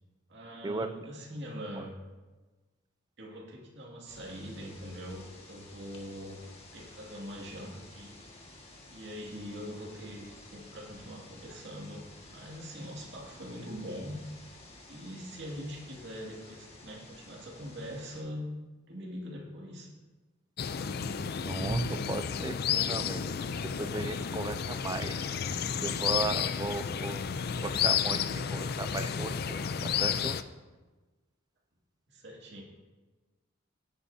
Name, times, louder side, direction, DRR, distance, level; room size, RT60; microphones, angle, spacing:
voice 1, 0.3-1.9 3.2-6.4 6.7-8.2 8.9-12.0 12.3-14.2 14.9-18.5 18.9-19.9 32.1-32.6, equal, 55° right, -2 dB, 2.2 m, -42 dB
sound 1, 4.0-18.2, left 2 dB, 30° left, 1.7 m, -52 dB
sound 2, 20.6-30.4, left 7 dB, 50° left, 0.4 m, -32 dB
voice 2, 21.5-23.4 23.8-25.5 25.8-27.2 27.6-28.2 28.5-30.4, right 2 dB, 20° right, 10 dB, 0.4 m, -36 dB
17.0 x 8.8 x 2.8 m, 1.3 s
head